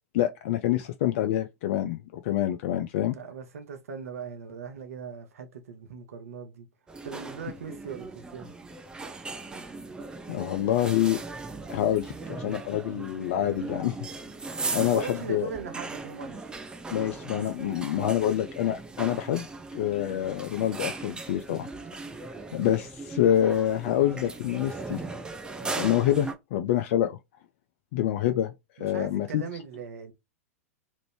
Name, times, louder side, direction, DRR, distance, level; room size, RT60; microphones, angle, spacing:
voice 1, 0.1-3.1 10.3-11.2 11.7-14.0 14.7-15.5 16.9-19.5 19.7-21.7 22.5-25.0 25.7-27.2 27.9-29.4, left 12 dB, 50° left, 0.3 m, -26 dB
voice 2, 3.1-6.7 7.0-8.5 14.8-16.5 28.8-30.1, right 6 dB, 65° right, 0.6 m, -39 dB
sound 1, 6.9-26.3, right 3 dB, 10° right, 0.5 m, -38 dB
3.0 x 2.5 x 3.2 m
figure-of-eight pair, 100°, 8 cm